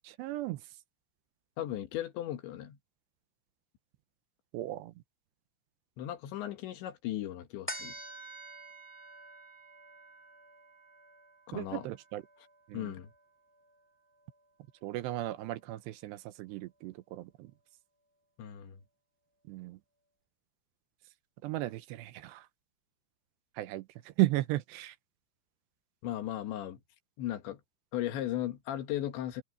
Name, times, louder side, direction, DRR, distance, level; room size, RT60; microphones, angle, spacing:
voice 1, 0.0-0.6 4.5-4.9 11.5-12.2 12.7-12.9 14.8-17.5 19.5-19.8 21.4-22.5 23.6-25.0, right 17 dB, 75° right, 2.8 m, -35 dB
voice 2, 1.6-2.8 6.0-7.9 11.5-11.9 12.7-13.1 18.4-18.8 26.0-26.8 27.2-27.6 27.9-29.4, left 12 dB, 75° left, 3.8 m, -36 dB
sound 1, 7.7-14.4 14.9-15.0, right 1 dB, 10° left, 0.6 m, -49 dB
omnidirectional pair, 5.4 m